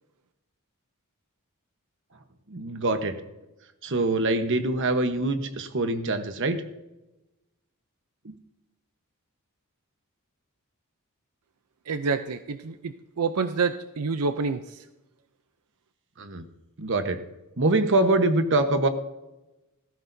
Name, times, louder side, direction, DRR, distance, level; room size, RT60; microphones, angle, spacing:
voice 1, 2.5-3.1 3.8-6.6 8.2-8.3 16.2-16.4 16.8-17.2 17.6-18.9, right 2 dB, 55° right, 7 dB, 1.1 m, -24 dB
voice 2, 11.9-14.6, right 4 dB, 90° right, 10 dB, 0.6 m, -28 dB
18.0 x 14.5 x 2.7 m, 1.0 s
head